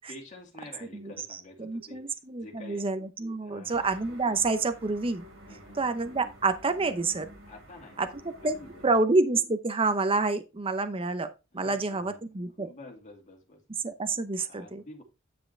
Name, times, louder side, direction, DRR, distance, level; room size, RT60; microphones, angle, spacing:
voice 1, 0.1-2.0 2.4-2.8 3.4-3.9 5.5-5.8 7.5-8.1 8.4-8.9 11.5-12.2 12.6-13.6 14.4-15.0, left 2 dB, 35° left, 2.6 m, -48 dB
voice 2, 0.9-5.2 5.7-7.3 8.0-8.6 8.8-12.7 13.8-14.8, right 3 dB, 25° right, 0.7 m, -28 dB
sound 1, 3.7-9.0, right 1 dB, 70° right, 4.5 m, -50 dB
9.7 x 5.6 x 3.2 m
head